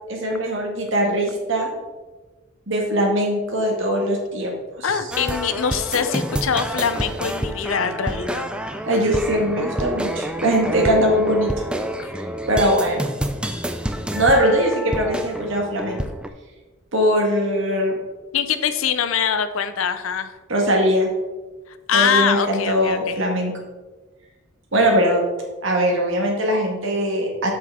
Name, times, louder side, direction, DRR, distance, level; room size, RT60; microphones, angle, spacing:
voice 1, 0.1-1.7 2.7-4.8 8.9-11.6 12.5-13.0 14.1-16.0 16.9-17.9 20.5-21.1 21.9-23.5 24.7-25.2 25.6-27.5, equal, 65° right, 0 dB, 1.7 m, -21 dB
voice 2, 4.8-8.5 12.0-12.1 18.3-20.4 21.7-23.2, left 7 dB, 70° left, 11 dB, 0.6 m, -23 dB
sound 1, 5.1-16.3, right 1 dB, 5° right, 0.3 m, -28 dB
7.3 x 6.1 x 3.6 m, 1.2 s
head